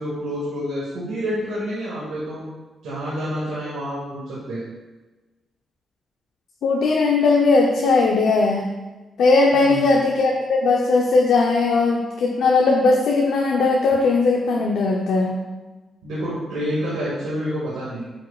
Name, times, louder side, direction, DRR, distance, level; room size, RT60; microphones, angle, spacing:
voice 1, 0.0-2.5 2.8-4.6 9.5-10.0 16.0-18.1, equal, 85° right, -8 dB, 2.0 m, -28 dB
voice 2, 6.6-8.7 9.2-15.4, left 3 dB, 80° left, -1 dB, 0.8 m, -18 dB
8.5 x 6.4 x 2.4 m, 1.2 s
cardioid pair, 65°, 0 cm